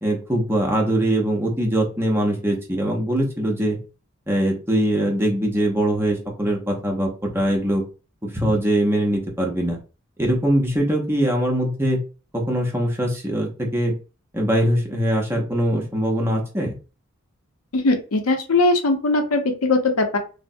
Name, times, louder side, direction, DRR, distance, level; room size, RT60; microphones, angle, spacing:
voice 1, 0.0-3.8 4.3-7.8 8.2-9.8 10.2-12.0 12.3-13.9 14.3-16.7, right 1 dB, 10° right, 0 dB, 0.6 m, -22 dB
voice 2, 17.7-20.2, left 2 dB, 90° left, 6 dB, 0.6 m, -20 dB
3.3 x 2.0 x 2.6 m, 0.34 s
head